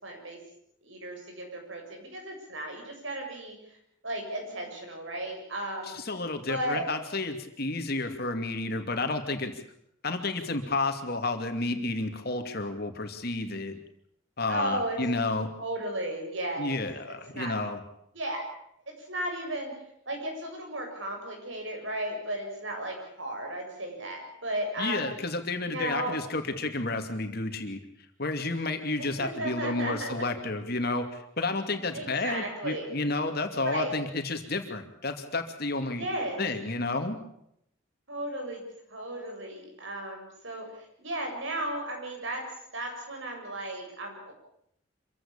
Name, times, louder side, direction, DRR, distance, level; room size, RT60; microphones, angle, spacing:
voice 1, 0.0-0.4 0.8-3.6 4.0-5.9 6.5-6.9 14.5-15.0 15.6-16.8 17.0-17.6 18.1-18.4 19.1-19.7 20.1-25.1 25.7-26.2 29.0-30.2 31.9-32.9 33.6-33.9 35.9-36.4 38.1-38.6 38.9-42.4 42.7-44.3, right 1 dB, 70° right, 2 dB, 7.4 m, -35 dB
voice 2, 5.8-9.5 10.0-13.8 14.4-15.5 16.6-17.8 24.8-27.8 28.2-36.1 36.4-37.2, left 2 dB, 50° left, 6 dB, 2.6 m, -31 dB
26.0 x 16.0 x 8.7 m, 0.74 s
head